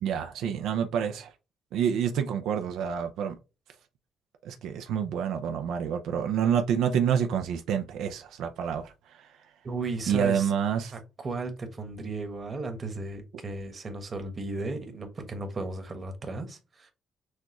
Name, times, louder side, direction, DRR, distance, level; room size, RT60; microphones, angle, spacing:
voice 1, 0.0-1.3 1.7-3.4 4.4-9.4 10.1-11.0, right 8 dB, 85° right, 0.5 m, -28 dB
voice 2, 9.6-10.5 10.9-16.9, right 3 dB, 40° right, 1.3 m, -35 dB
6.4 x 2.3 x 2.9 m
cardioid pair, 90°, 0 cm